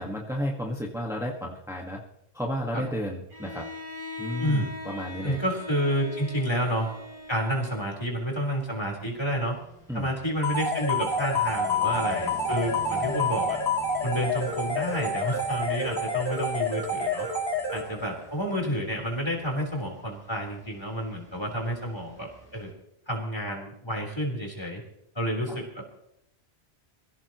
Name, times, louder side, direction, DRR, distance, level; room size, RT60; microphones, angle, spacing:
voice 1, 0.0-2.0 2.3-3.7 4.2-5.4 9.9-10.1 25.5-25.6, equal, 5° right, -2 dB, 1.6 m, -32 dB
Bowed string instrument, 3.3-8.3, left 2 dB, 55° right, 2.0 m, -41 dB
voice 2, 4.4-4.7 5.2-6.9 7.3-9.6 9.9-13.6 14.0-17.3 17.7-22.7 23.1-24.8 25.1-25.8, equal, 25° left, -1 dB, 4.1 m, -30 dB
sound 1, 6.8-22.7, right 1 dB, 20° right, 5.2 m, -48 dB
sound 2, 10.4-18.2, left 2 dB, 85° left, 3.5 m, -28 dB
23.5 x 16.0 x 3.1 m, 0.79 s
omnidirectional pair, 1.1 m